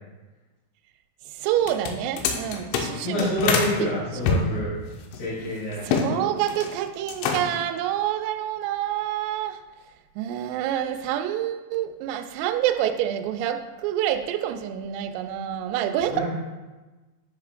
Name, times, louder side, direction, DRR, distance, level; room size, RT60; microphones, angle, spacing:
voice 1, 1.3-3.9 5.8-9.6 10.2-16.2, right 11 dB, 90° right, 7 dB, 3.2 m, -27 dB
sound 1, 1.6-3.7 4.2-6.1 6.4-6.8 7.1-7.7, left 5 dB, 85° left, 3.0 m, -26 dB
voice 2, 3.0-4.7 5.1-5.8 16.1-16.2, left 1 dB, 65° left, -12 dB, 4.4 m, -27 dB
10.0 x 5.7 x 2.4 m, 1.2 s
omnidirectional pair, 5.8 m